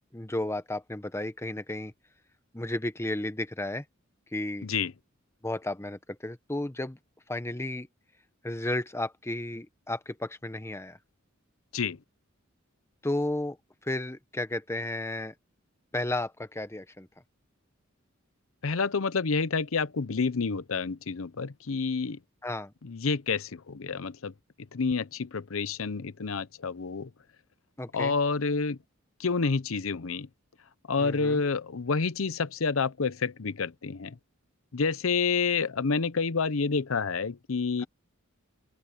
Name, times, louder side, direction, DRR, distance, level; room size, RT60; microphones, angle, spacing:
voice 1, 0.0-1.9 2.5-3.8 4.3-4.7 5.4-7.0 7.3-7.9 8.4-11.0 13.0-13.6 13.8-15.3 15.9-17.1 22.4-22.7 27.8-28.1 31.0-31.4 37.8-37.9, left 1 dB, 15° left, 1.1 m, -33 dB
voice 2, 4.6-4.9 11.7-12.0 18.6-22.2 22.8-24.3 24.7-27.1 27.9-28.8 29.2-30.3 30.9-34.1 34.7-37.8, left 4 dB, 85° left, 0.7 m, -29 dB
open air
head